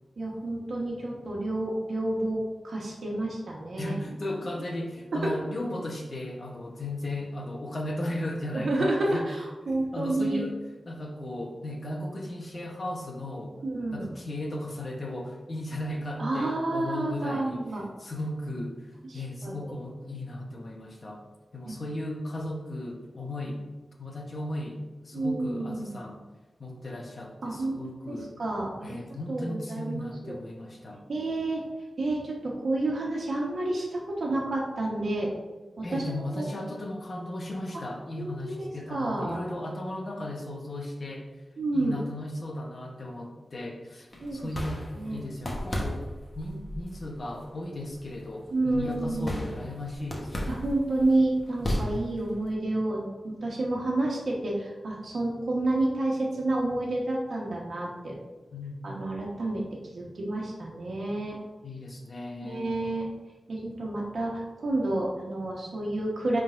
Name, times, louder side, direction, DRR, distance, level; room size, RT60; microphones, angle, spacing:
voice 1, 0.2-2.4 2.6-3.9 5.2-5.4 8.5-10.4 13.6-14.1 16.2-17.8 19.1-19.8 21.7-21.8 25.1-26.0 27.4-27.8 28.1-29.0 29.3-30.4 31.1-31.6 32.0-35.3 35.8-36.5 38.2-39.4 41.6-42.0 44.2-44.4 44.9-45.2 48.5-49.6 50.5-58.2 58.8-59.6 59.9-61.4 62.4-63.1 63.5-64.3 64.6-66.4, right 2 dB, 70° right, -3 dB, 1.3 m, -29 dB
voice 2, 3.8-9.2 9.7-10.6 10.9-13.6 13.9-17.7 18.0-21.2 21.5-23.6 24.0-24.8 25.0-26.2 26.6-28.3 28.8-31.0 35.8-41.3 41.7-46.1 46.3-50.5 58.5-59.1 61.6-62.8, left 1 dB, 50° left, 1 dB, 1.0 m, -36 dB
sound 1, 44.1-52.5, equal, 30° left, 1.2 m, -36 dB
10.0 x 3.8 x 2.6 m, 1.1 s
wide cardioid pair, 110°, 0 cm